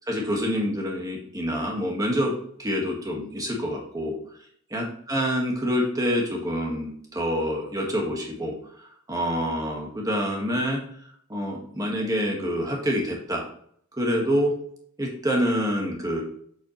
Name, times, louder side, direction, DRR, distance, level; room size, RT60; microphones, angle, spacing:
voice 1, 0.1-2.3 2.6-4.2 4.7-8.6 9.1-10.8 11.3-13.4 14.0-14.5 15.0-16.2, equal, 15° right, -1 dB, 1.7 m, -26 dB
8.0 x 7.5 x 3.2 m, 0.63 s
head